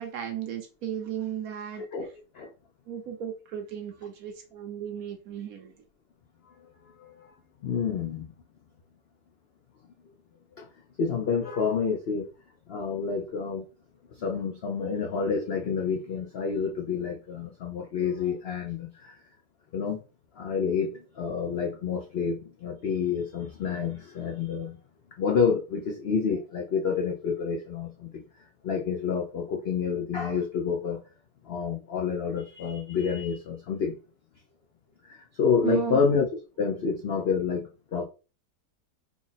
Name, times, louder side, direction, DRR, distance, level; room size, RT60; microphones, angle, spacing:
voice 1, 0.0-1.9 2.9-5.7 35.6-36.0, right 10 dB, 65° right, 1.1 m, -34 dB
voice 2, 1.9-2.5 7.0-7.3 7.6-8.3 10.6-10.7 11.0-12.3 12.7-13.6 14.2-19.2 19.7-20.0 20.4-24.8 25.2-28.2 28.6-31.0 31.5-33.9 35.0-36.3 36.6-38.0, left 6 dB, 90° left, 0.5 m, -28 dB
3.6 x 2.1 x 3.9 m
omnidirectional pair, 1.8 m